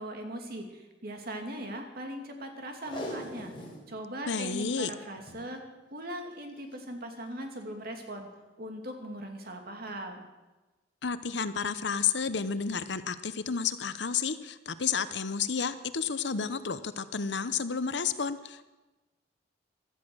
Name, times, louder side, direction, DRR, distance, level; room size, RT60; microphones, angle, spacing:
voice 1, 0.0-3.6 3.9-5.6 5.9-8.3 8.6-10.3, right 1 dB, 55° right, 3 dB, 2.6 m, -39 dB
Packing tape duct tape, 2.7-3.9 4.2-4.3 4.5-4.6 5.2-5.5 6.5-6.7 7.3-7.4, left 1 dB, 30° left, 4.3 m, -40 dB
voice 2, 4.3-4.9 11.0-18.7, left 6 dB, 70° left, 13 dB, 0.8 m, -31 dB
16.0 x 13.0 x 6.2 m, 1.1 s
head